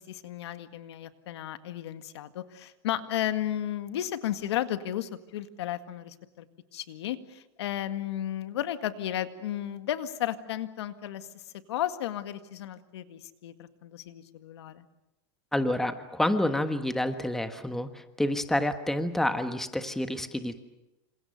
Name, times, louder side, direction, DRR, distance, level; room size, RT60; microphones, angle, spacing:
voice 1, 0.0-6.5 6.7-11.4 11.7-14.8, left 12 dB, 85° left, 10 dB, 1.9 m, -34 dB
voice 2, 15.5-20.6, left 1 dB, 5° left, 8 dB, 1.4 m, -28 dB
28.0 x 27.0 x 6.7 m, 0.95 s
supercardioid pair, 155°, 14 cm